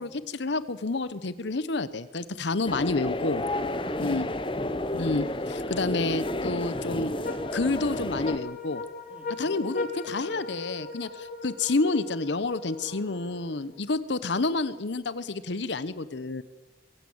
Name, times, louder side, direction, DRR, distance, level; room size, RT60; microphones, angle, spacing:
voice 1, 0.4-3.4 4.0-4.3 4.9-7.1 7.5-8.8 9.4-16.4, left 3 dB, 70° left, 15 dB, 0.9 m, -29 dB
sound 1, 2.6-8.4, left 1 dB, 25° left, 0.9 m, -31 dB
voice 2, 3.5-4.7 9.1-10.5 12.8-13.7, equal, 10° right, 3 dB, 2.8 m, -50 dB
sound 2, 6.2-13.8, left 3 dB, 45° left, 1.9 m, -39 dB
23.0 x 15.5 x 7.9 m, 1.2 s
head